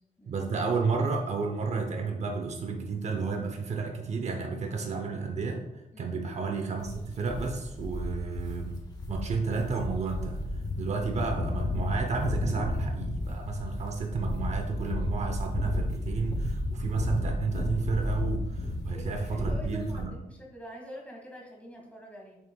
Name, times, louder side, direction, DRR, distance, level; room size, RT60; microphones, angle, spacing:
voice 1, 0.3-5.6 6.0-8.8 9.1-10.4 10.8-20.1, right 4 dB, 50° right, 3 dB, 0.7 m, -31 dB
sound 1, 6.8-20.0, left 1 dB, 30° left, 0.9 m, -33 dB
voice 2, 18.9-22.4, equal, 10° left, -2 dB, 1.4 m, -44 dB
7.3 x 5.9 x 2.3 m, 0.93 s
wide cardioid pair, 170°, 14 cm